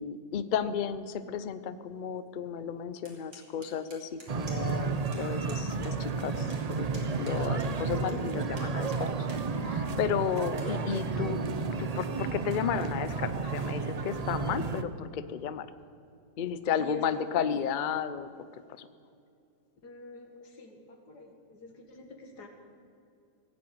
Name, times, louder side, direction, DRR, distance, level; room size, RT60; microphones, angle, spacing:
voice 1, 0.0-9.3 9.6-11.5 11.8-15.7 16.4-18.3 18.8-18.9, left 8 dB, 60° left, 13 dB, 0.5 m, -33 dB
sound 1, 3.0-4.8 5.1-5.2 5.5-5.9 6.2-8.1 8.5-9.4 9.9-10.0 10.5-10.7, right 2 dB, 80° right, 3.3 m, -50 dB
sound 2, 4.3-14.8, right 4 dB, 65° right, 0.3 m, -32 dB
voice 2, 19.8-22.5, left 3 dB, 90° left, 3 dB, 2.4 m, -46 dB
18.0 x 7.7 x 8.7 m, 2.6 s
omnidirectional pair, 1.7 m